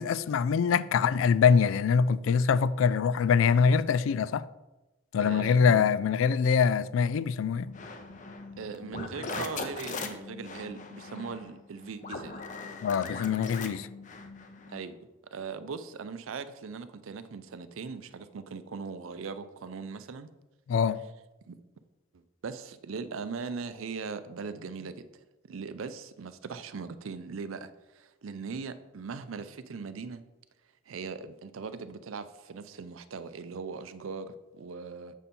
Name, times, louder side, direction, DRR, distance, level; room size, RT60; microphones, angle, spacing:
voice 1, 0.0-4.5 5.1-7.7 12.8-13.9 20.7-21.0, left 6 dB, 75° left, 0.3 m, -24 dB
voice 2, 5.2-5.8 8.6-12.4 14.7-15.0 15.3-20.3 21.5-21.6 22.4-25.1 25.5-30.2 30.9-35.1, right 5 dB, 85° right, 0.5 m, -39 dB
sound 1, 7.6-14.9, left 4 dB, 40° left, 0.6 m, -40 dB
7.2 x 5.3 x 4.3 m
head